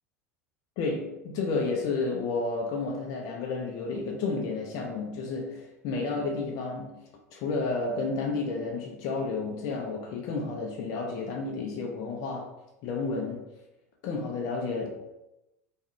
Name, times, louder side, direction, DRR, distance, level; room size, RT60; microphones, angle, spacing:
voice 1, 0.8-6.9 7.3-12.5 12.8-13.5 14.0-14.9, left 3 dB, 50° left, 1 dB, 0.7 m, -31 dB
3.2 x 2.4 x 4.3 m, 0.93 s
figure-of-eight pair, 75°, 8 cm